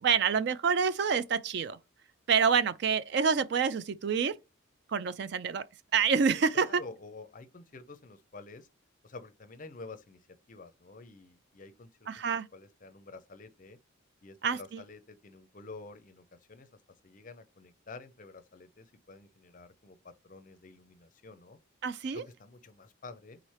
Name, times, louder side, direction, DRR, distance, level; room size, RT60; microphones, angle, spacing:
voice 1, 0.0-1.8 2.3-4.3 4.9-5.6 5.9-6.8 12.1-12.5 14.4-14.8 21.8-22.2, right 6 dB, 55° right, 0.3 m, -27 dB
voice 2, 6.5-8.7 9.0-13.8 14.2-21.6 22.1-23.4, left 3 dB, 40° left, 0.5 m, -49 dB
3.9 x 3.2 x 4.2 m
head